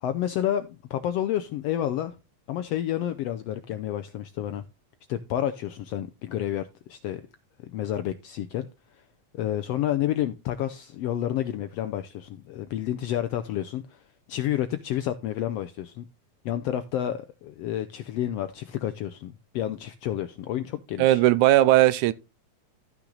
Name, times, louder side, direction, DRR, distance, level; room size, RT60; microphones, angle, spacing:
voice 1, 0.0-2.1 2.5-4.6 5.1-7.2 7.7-8.7 9.3-14.0 14.3-16.0 16.4-21.2, left 11 dB, 80° left, 1.4 m, -30 dB
voice 2, 21.0-22.1, right 15 dB, 80° right, 2.1 m, -18 dB
13.5 x 6.0 x 3.8 m
omnidirectional pair, 3.5 m